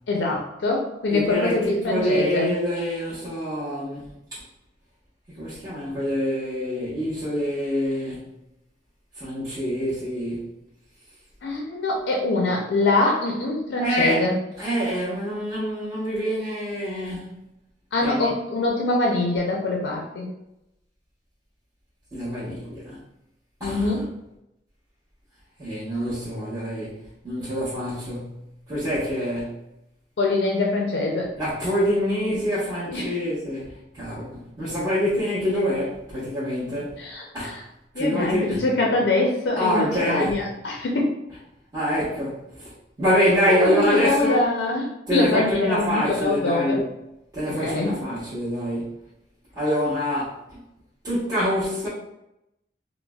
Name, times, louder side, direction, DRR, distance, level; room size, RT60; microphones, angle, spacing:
voice 1, 0.1-2.5 11.4-14.3 17.9-20.3 23.6-24.0 30.2-31.3 32.9-33.1 37.0-37.6 37.9-41.2 43.6-46.8 47.6-48.0, left 2 dB, 80° left, -1 dB, 0.4 m, -24 dB
voice 2, 1.1-4.0 4.3-4.4 5.4-8.2 9.2-10.5 13.8-14.2 14.6-17.4 18.0-18.3 22.1-23.0 23.6-24.0 25.6-26.9 27.2-28.4 28.7-29.6 31.4-37.0 37.3-37.6 37.9-38.6 39.5-40.4 41.7-42.7 43.0-44.4 45.1-46.9 47.3-48.9 49.5-50.6 51.0-51.9, equal, 20° right, -12 dB, 0.8 m, -26 dB
3.9 x 2.0 x 2.2 m, 0.86 s
head